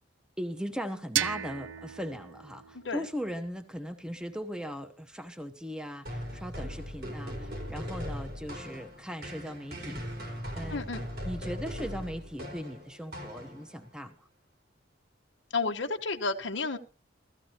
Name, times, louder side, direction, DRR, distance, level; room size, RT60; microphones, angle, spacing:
voice 1, 0.4-10.9 11.2-14.3, equal, 5° right, 0.9 m, -39 dB
sound 1, 1.2-4.0, right 10 dB, 80° right, 0.5 m, -36 dB
sound 2, 6.1-13.9, equal, 55° right, 4.6 m, -39 dB
voice 2, 10.7-11.0 15.5-16.8, left 3 dB, 70° left, 1.3 m, -31 dB
16.5 x 14.5 x 2.9 m
head